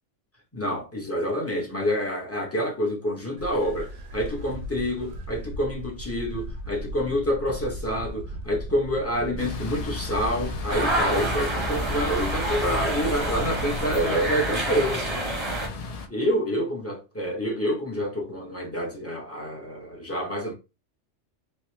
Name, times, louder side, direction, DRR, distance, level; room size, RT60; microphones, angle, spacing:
voice 1, 0.5-15.2 16.1-20.5, equal, 15° left, 0.6 m, -27 dB
sound 1, 3.4-14.0, equal, 80° right, 0.9 m, -37 dB
sound 2, 9.4-16.1, left 4 dB, 80° left, 0.3 m, -35 dB
sound 3, 10.7-15.7, right 1 dB, 30° right, 0.7 m, -28 dB
3.2 x 2.1 x 2.8 m
omnidirectional pair, 1.2 m